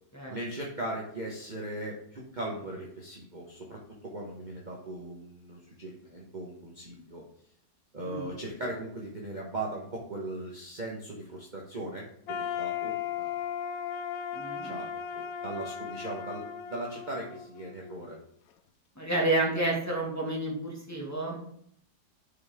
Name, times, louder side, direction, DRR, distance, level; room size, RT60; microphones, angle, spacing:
voice 1, 0.3-7.2 7.9-13.5 14.6-18.2, right 1 dB, 30° right, -3 dB, 1.3 m, -39 dB
sound 1, 12.3-18.2, left 8 dB, 70° left, 0.9 m, -36 dB
voice 2, 14.3-14.8 19.0-21.4, right 2 dB, 10° left, -4 dB, 2.1 m, -30 dB
10.5 x 5.7 x 3.7 m, 0.69 s
omnidirectional pair, 1.9 m